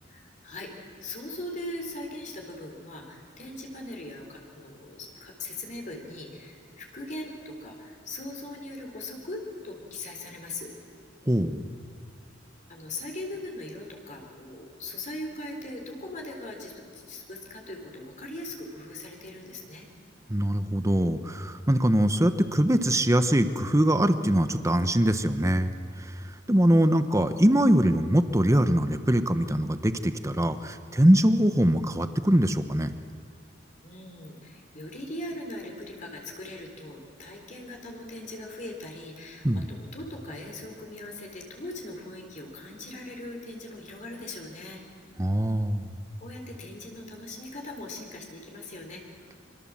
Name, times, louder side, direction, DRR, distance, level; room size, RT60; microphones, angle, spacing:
voice 1, 0.1-10.7 12.7-19.9 33.8-44.8 46.2-49.0, left 1 dB, 40° left, 1 dB, 3.9 m, -40 dB
voice 2, 11.3-11.6 20.3-25.7 26.0-32.9 39.4-39.7 45.2-45.9, right 1 dB, 15° right, 10 dB, 1.1 m, -23 dB
25.5 x 25.0 x 7.5 m, 2.1 s
head